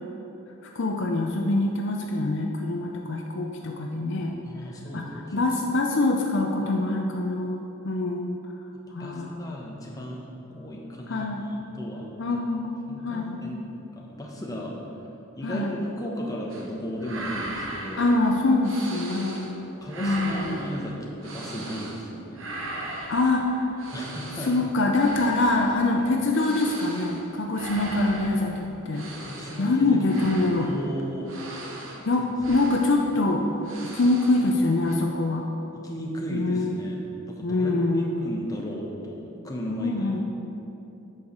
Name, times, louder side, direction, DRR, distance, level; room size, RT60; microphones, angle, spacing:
voice 1, 0.6-4.4 4.9-5.0 5.3-8.3 8.9-9.5 11.1-11.4 12.2-13.4 15.4-15.8 18.0-19.6 20.0-20.7 23.1-23.9 24.4-28.5 28.9-29.1 29.6-30.7 32.1-33.5 33.9-35.5 36.3-36.8 37.4-38.2 39.7-40.2, left 2 dB, 55° left, 2 dB, 0.6 m, -24 dB
voice 2, 4.4-5.5 9.0-12.1 12.9-13.6 13.9-14.7 15.4-18.1 19.8-21.0 21.2-22.5 23.9-24.5 29.2-30.0 30.6-31.3 32.0-32.1 32.5-32.6 35.8-37.7 38.2-40.1, equal, 15° left, -2 dB, 1.0 m, -35 dB
sound 1, 16.5-16.7 17.0-19.6 19.8-22.1 22.3-34.6 34.8-35.0, right 2 dB, 60° right, 1.0 m, -39 dB
8.4 x 4.8 x 6.6 m, 3.0 s
head